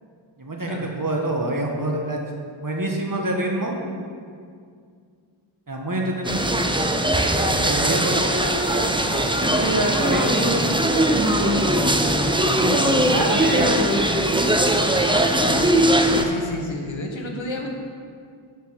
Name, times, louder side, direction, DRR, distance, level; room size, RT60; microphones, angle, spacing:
voice 1, 0.4-2.2 2.6-3.8 5.7-6.5 7.4-9.0 9.3-11.9 12.5-14.3, right 1 dB, 40° right, 0 dB, 1.7 m, -26 dB
sound 1, 6.2-16.2, right 1 dB, 10° right, 0.8 m, -20 dB
voice 2, 16.0-17.7, left 2 dB, 65° left, 1 dB, 1.4 m, -31 dB
9.7 x 5.6 x 6.7 m, 2.2 s
wide cardioid pair, 40°, 49 cm